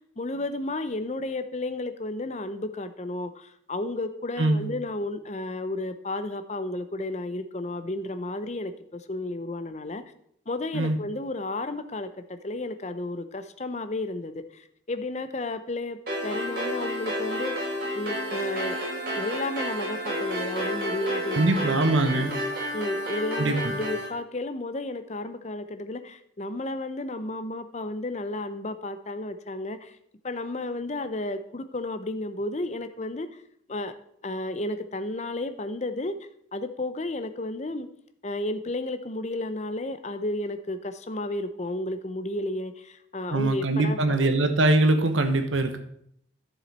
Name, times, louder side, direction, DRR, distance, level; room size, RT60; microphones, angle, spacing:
voice 1, 0.0-10.0 10.5-18.8 19.1-22.3 22.7-30.0 30.2-33.4 33.7-33.9 34.2-36.2 36.5-37.9 38.2-44.4, left 2 dB, 35° left, 10 dB, 0.6 m, -32 dB
sound 1, 16.1-24.1, equal, 50° right, 4.3 m, -31 dB
voice 2, 21.4-22.3 23.4-23.6 43.3-45.8, right 2 dB, 85° right, 8 dB, 1.1 m, -22 dB
11.5 x 7.0 x 4.2 m, 0.70 s
head